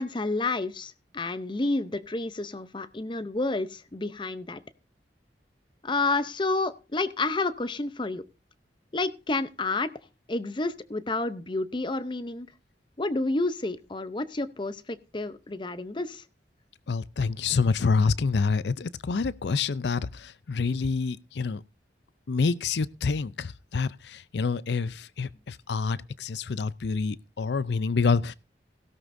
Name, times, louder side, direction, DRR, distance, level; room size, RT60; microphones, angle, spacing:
voice 1, 0.0-4.6 5.8-8.2 8.9-9.9 10.3-12.5 13.0-16.2, left 2 dB, 25° left, 0.7 m, -30 dB
voice 2, 16.9-21.6 22.3-28.3, left 4 dB, 75° left, 0.5 m, -27 dB
16.5 x 12.0 x 2.6 m
head